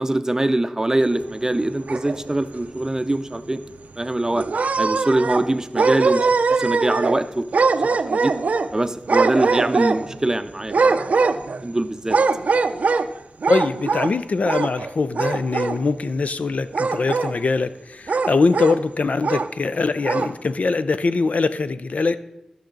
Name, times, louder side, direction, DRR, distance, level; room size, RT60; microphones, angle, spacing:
voice 1, 0.0-3.6 4.0-4.4 4.8-6.3 6.6-7.4 7.8-8.3 8.7-10.9 11.6-12.2, right 1 dB, 25° right, 0.5 m, -23 dB
sound 1, 1.5-2.4 2.9-3.0 3.3-3.4 4.3-5.5 5.7-7.2 7.5-8.7 9.1-10.2 10.7-11.7 12.1-13.1 13.4-14.1 14.4-14.9 15.1-15.8 16.7-17.3 18.1-18.8 19.2-19.5 20.0-20.3, right 4 dB, 85° right, 0.4 m, -21 dB
voice 2, 13.5-22.2, left 4 dB, 70° left, 0.4 m, -22 dB
13.0 x 6.4 x 3.9 m
wide cardioid pair, 65°, 2 cm